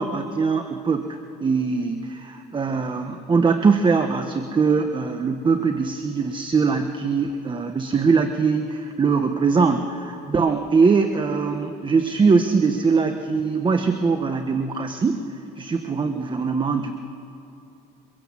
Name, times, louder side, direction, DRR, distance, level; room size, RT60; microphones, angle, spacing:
voice 1, 0.0-15.3 15.6-17.0, right 5 dB, 30° right, 7 dB, 1.2 m, -22 dB
24.5 x 23.0 x 7.5 m, 2.9 s
cardioid pair, 110°, 17 cm